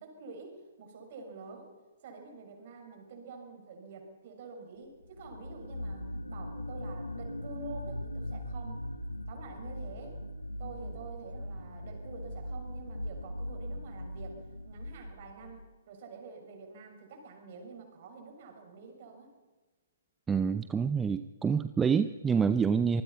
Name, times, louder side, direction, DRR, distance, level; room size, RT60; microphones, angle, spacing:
voice 1, 0.0-1.7 2.0-8.8 9.3-10.2 10.6-19.3, right 4 dB, 45° right, 4 dB, 6.7 m, -48 dB
sound 1, 5.0-15.7, left 1 dB, 85° left, 1.5 m, -40 dB
voice 2, 20.3-23.0, right 6 dB, 10° right, 11 dB, 0.7 m, -27 dB
26.0 x 20.5 x 5.8 m, 1.2 s
figure-of-eight pair, 125°, 0 cm